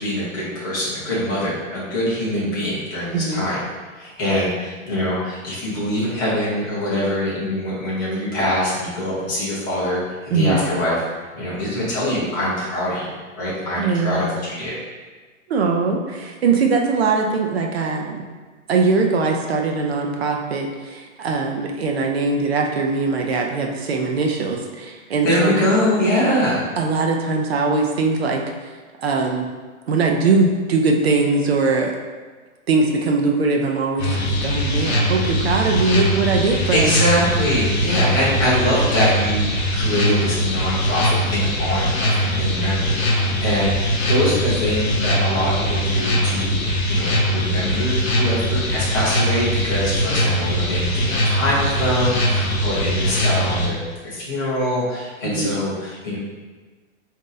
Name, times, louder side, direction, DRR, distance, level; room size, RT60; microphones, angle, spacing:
voice 1, 0.0-3.6 4.0-11.0 11.3-13.1 13.4-14.8 25.2-26.6 36.7-53.8 54.0-56.2, equal, 15° left, -8 dB, 0.6 m, -23 dB
voice 2, 13.8-14.2 15.5-18.2 18.7-25.7 26.8-28.7 29.0-29.5 29.9-31.9 32.7-37.0 50.1-50.3 55.2-55.6, right 4 dB, 50° right, 1 dB, 0.6 m, -21 dB
sound 1, 34.0-53.7, equal, 50° left, 0.9 m, -21 dB
3.7 x 2.7 x 3.9 m, 1.4 s
hypercardioid pair, 170°, 41 cm